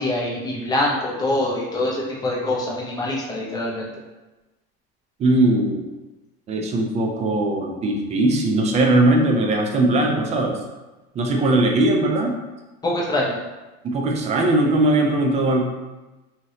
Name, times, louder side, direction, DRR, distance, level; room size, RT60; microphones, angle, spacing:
voice 1, 0.0-3.9 12.8-13.4, left 1 dB, 15° left, -4 dB, 0.7 m, -24 dB
voice 2, 5.2-5.9 6.5-10.6 11.2-12.3 13.8-15.6, right 2 dB, 25° right, 2 dB, 0.3 m, -19 dB
2.9 x 2.8 x 2.8 m, 1.1 s
cardioid pair, 140°, 29 cm